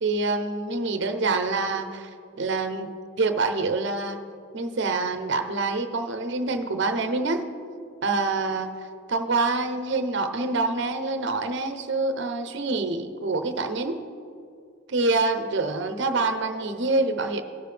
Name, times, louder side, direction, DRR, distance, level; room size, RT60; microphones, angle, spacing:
voice 1, 0.0-2.1 2.4-2.9 3.2-4.2 4.5-7.5 8.0-8.7 9.1-14.0 14.9-17.4, right 3 dB, 60° right, 7 dB, 0.7 m, -26 dB
18.0 x 6.7 x 3.4 m, 2.4 s
head